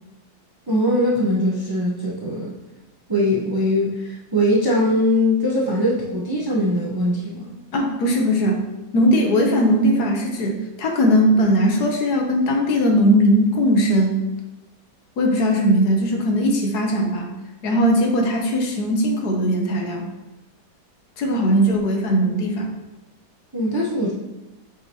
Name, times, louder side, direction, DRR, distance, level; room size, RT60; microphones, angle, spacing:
voice 1, 0.7-2.5 3.1-7.6 21.3-21.4 23.5-24.1, left 1 dB, 20° right, -4 dB, 0.6 m, -21 dB
voice 2, 7.7-8.6 8.9-14.2 15.2-17.3 17.6-20.1 21.2-22.8, equal, 70° left, 2 dB, 1.5 m, -19 dB
7.7 x 5.1 x 2.9 m, 1.0 s
omnidirectional pair, 1.8 m